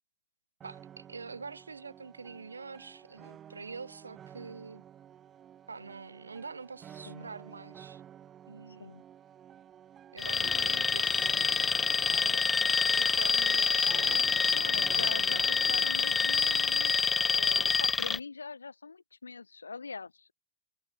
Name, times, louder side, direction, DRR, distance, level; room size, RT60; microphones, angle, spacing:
sound 1, 0.6-16.0, right 9 dB, 25° right, 2.1 m, -51 dB
voice 1, 0.6-4.8 5.7-8.0 8.5-9.0 10.1-11.3 12.2-14.4, right 4 dB, 75° right, 4.0 m, -45 dB
Alarm, 10.2-18.2, left 5 dB, 15° left, 0.4 m, -27 dB
voice 2, 14.5-16.9 17.3-20.3, left 4 dB, 75° left, 1.0 m, -42 dB
figure-of-eight pair, 90°, 0 cm